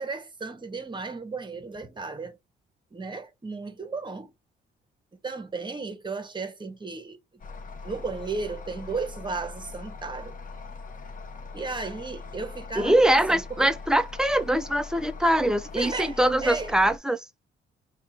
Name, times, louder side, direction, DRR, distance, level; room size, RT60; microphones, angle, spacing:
voice 1, 0.0-2.4 2.9-4.3 5.2-7.2 7.8-10.4 11.5-13.7 15.8-16.7, right 4 dB, 25° right, 1.1 m, -34 dB
sound 1, 7.4-17.0, left 4 dB, 40° left, 0.9 m, -41 dB
voice 2, 12.8-17.2, right 1 dB, 5° right, 0.5 m, -23 dB
3.5 x 2.5 x 4.3 m
cardioid pair, 90°, 20 cm